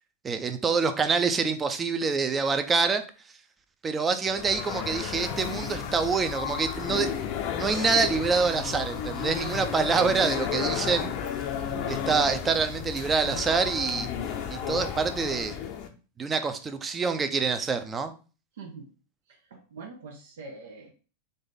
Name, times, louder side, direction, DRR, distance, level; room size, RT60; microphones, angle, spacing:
voice 1, 0.2-3.0 3.8-7.1 7.6-11.2 11.9-14.1 14.5-15.5 16.2-18.1, right 5 dB, 20° right, 9 dB, 0.6 m, -26 dB
sound 1, 4.3-15.9, left 8 dB, 55° left, 0.7 m, -33 dB
voice 2, 11.5-11.9 18.5-18.9 19.3-20.9, right 4 dB, 75° right, 2 dB, 0.8 m, -44 dB
3.9 x 2.6 x 3.9 m, 0.36 s
hypercardioid pair, 110°, 0 cm